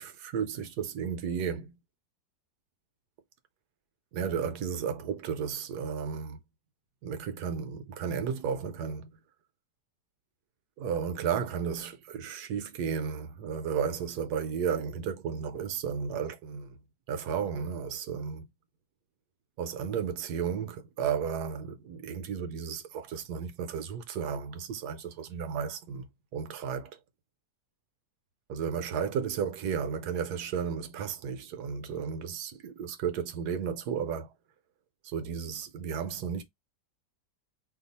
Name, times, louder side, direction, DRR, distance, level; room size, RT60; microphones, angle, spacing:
voice 1, 0.0-1.7 4.1-6.4 7.0-9.1 10.8-16.8 17.1-18.5 19.6-26.9 28.5-34.3 35.0-36.4, right 7 dB, 70° right, 1.1 m, -33 dB
2.8 x 2.4 x 4.0 m
omnidirectional pair, 1.9 m